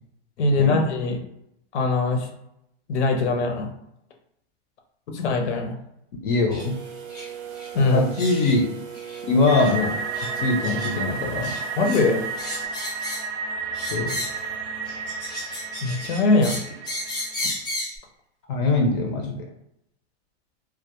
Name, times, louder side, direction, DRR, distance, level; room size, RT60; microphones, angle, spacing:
voice 1, 0.4-1.2 1.7-2.3 2.9-3.7 5.1-5.8 7.7-8.1 11.8-12.2 15.8-16.6, left 3 dB, 90° left, 3 dB, 0.7 m, -22 dB
voice 2, 6.2-6.7 7.9-8.7 9.3-9.9 10.4-11.5 13.8-14.2 18.5-19.4, left 3 dB, 50° left, 2 dB, 0.5 m, -22 dB
sound 1, 6.5-6.7 7.1-7.3 7.5-7.7 8.2-8.6 8.9-9.2 9.6-9.7 10.1-10.3 10.6-10.9 11.4-12.0 12.4-13.3 13.7-14.5 14.9-18.0, left 1 dB, 10° left, 0.7 m, -34 dB
sound 2, 6.6-12.7, right 8 dB, 50° right, 0.5 m, -39 dB
sound 3, 9.5-17.5, right 5 dB, 85° right, 0.7 m, -32 dB
2.2 x 2.1 x 2.8 m, 0.80 s
supercardioid pair, 150°, 33 cm